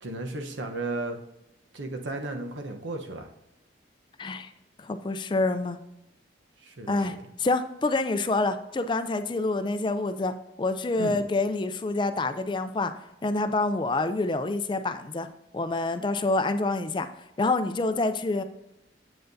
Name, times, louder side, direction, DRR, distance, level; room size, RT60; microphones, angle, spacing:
voice 1, 0.0-1.2 1.7-3.3 6.6-7.2 11.0-11.2, right 2 dB, 85° right, 5 dB, 0.9 m, -34 dB
voice 2, 4.2-4.5 4.8-5.8 6.9-12.9 13.2-15.3 15.5-17.1 17.4-18.4, left 2 dB, 25° left, 10 dB, 0.4 m, -27 dB
7.8 x 7.8 x 2.6 m, 0.91 s
head